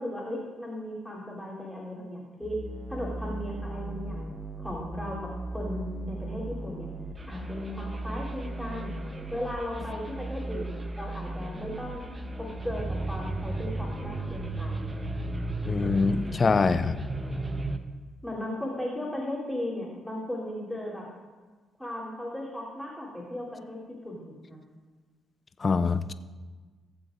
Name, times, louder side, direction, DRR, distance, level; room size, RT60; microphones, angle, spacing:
voice 1, 0.0-2.6 2.9-6.9 7.3-8.9 9.3-12.0 12.4-15.0 18.2-21.0 21.8-23.8 24.0-24.6, left 1 dB, ahead, -6 dB, 3.3 m, -36 dB
sound 1, 2.4-17.8, right 2 dB, 25° right, 0.8 m, -35 dB
voice 2, 15.7-17.0 25.6-26.1, left 4 dB, 35° left, 11 dB, 0.5 m, -24 dB
19.0 x 7.6 x 2.6 m, 1.3 s
cardioid pair, 90°, 0 cm